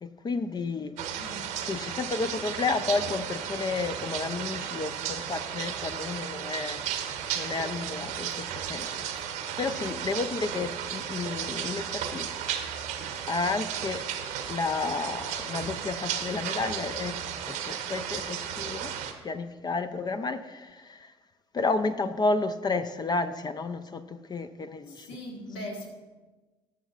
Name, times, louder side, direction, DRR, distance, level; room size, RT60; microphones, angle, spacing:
voice 1, 0.0-1.0 1.6-6.8 7.3-8.9 9.6-12.3 13.3-14.0 14.5-17.2 17.5-18.9 19.2-21.1 21.5-25.1, left 3 dB, 30° left, 9 dB, 0.5 m, -31 dB
sound 1, 1.0-19.1, right 9 dB, 65° right, 0.9 m, -34 dB
voice 2, 1.2-1.5 24.9-25.9, left 1 dB, 75° left, -1 dB, 1.7 m, -39 dB
18.0 x 7.0 x 2.5 m, 1.3 s
hypercardioid pair, 55°, 14 cm